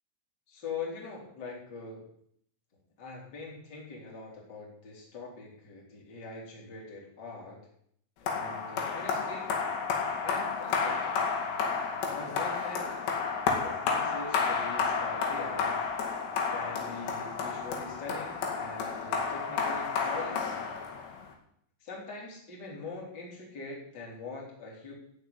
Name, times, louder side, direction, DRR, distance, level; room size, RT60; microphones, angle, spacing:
voice 1, 0.5-2.0 3.0-7.6 8.2-9.6 10.2-11.2 12.1-12.9 13.6-15.8 16.5-20.6 21.8-24.9, left 3 dB, 25° left, -2 dB, 3.8 m, -42 dB
sound 1, 8.3-21.3, left 5 dB, 70° left, 4.3 m, -31 dB
16.5 x 5.7 x 9.7 m, 0.68 s
omnidirectional pair, 5.4 m